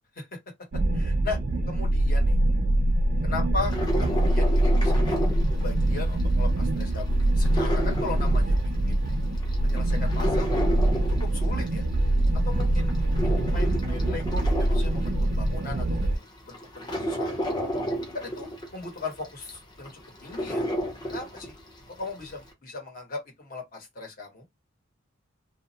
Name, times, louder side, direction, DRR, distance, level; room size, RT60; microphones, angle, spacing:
sound 1, 0.7-16.2, right 1 dB, 45° right, 0.3 m, -24 dB
voice 1, 0.9-1.4 1.7-2.4 3.2-3.7 4.0-5.3 5.6-9.0 9.6-10.7 11.2-11.8 12.3-13.0 13.4-17.5 18.1-20.6 21.1-21.5 22.0-24.5, left 3 dB, 45° left, 1.0 m, -38 dB
sound 2, 3.6-6.2 6.6-8.9 9.3-11.9 12.4-15.5 16.0-16.1 16.5-21.7 22.0-22.1, equal, 20° left, 0.7 m, -32 dB
2.3 x 2.0 x 2.6 m
head